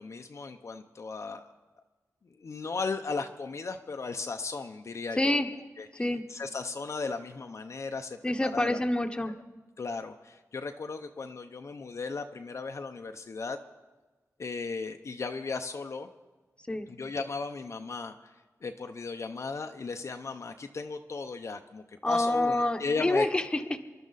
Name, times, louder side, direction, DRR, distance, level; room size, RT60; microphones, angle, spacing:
voice 1, 0.0-1.4 2.2-5.4 5.8-6.0 6.3-8.8 9.8-13.6 14.4-16.1 16.9-18.3 18.6-23.3, left 4 dB, 55° left, 6 dB, 0.7 m, -36 dB
voice 2, 5.1-5.5 5.9-6.2 8.2-9.3 16.7-16.9 22.0-23.8, left 1 dB, 15° left, 6 dB, 1.0 m, -27 dB
27.0 x 12.0 x 4.1 m, 1.3 s
wide cardioid pair, 110°, 6 cm